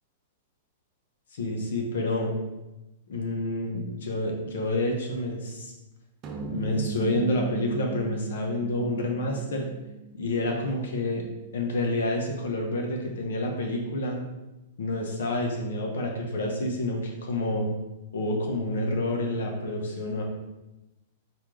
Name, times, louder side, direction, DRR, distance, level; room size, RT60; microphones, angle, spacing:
voice 1, 1.3-2.3 3.1-5.7 6.5-9.7 10.1-11.3 11.5-14.2 14.8-17.7 18.1-20.2, left 1 dB, 85° left, 1 dB, 1.0 m, -28 dB
sound 1, 6.2-10.8, right 4 dB, 25° right, 0.5 m, -37 dB
4.3 x 3.2 x 3.8 m, 1.0 s
supercardioid pair, 165°, 0 cm